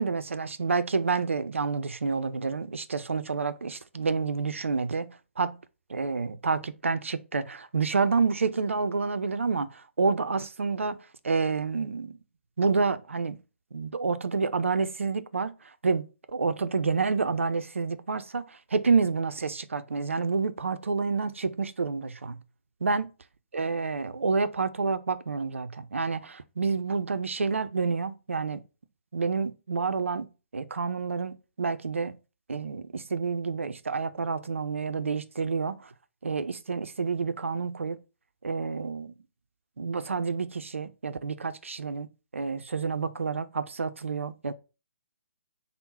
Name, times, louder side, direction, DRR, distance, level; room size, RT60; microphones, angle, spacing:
voice 1, 0.0-5.6 5.9-11.0 11.2-12.2 12.6-13.4 13.7-15.5 15.8-16.0 16.3-22.4 22.8-23.1 23.5-28.6 29.1-30.3 30.5-32.2 32.5-35.9 36.2-38.0 38.4-39.1 39.8-42.1 42.3-44.5, right 4 dB, 75° right, 0.4 m, -29 dB
3.6 x 2.1 x 4.1 m
figure-of-eight pair, 135°, 7 cm